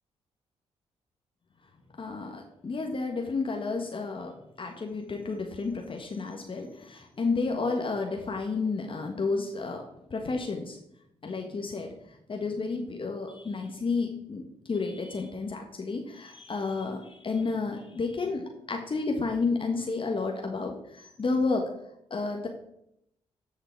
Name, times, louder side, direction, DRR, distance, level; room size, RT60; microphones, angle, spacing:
voice 1, 2.0-9.8 10.1-10.8 11.2-21.6 22.1-22.5, left 4 dB, 40° left, 2 dB, 1.5 m, -31 dB
10.5 x 5.7 x 4.7 m, 0.76 s
hypercardioid pair, 50°, 13 cm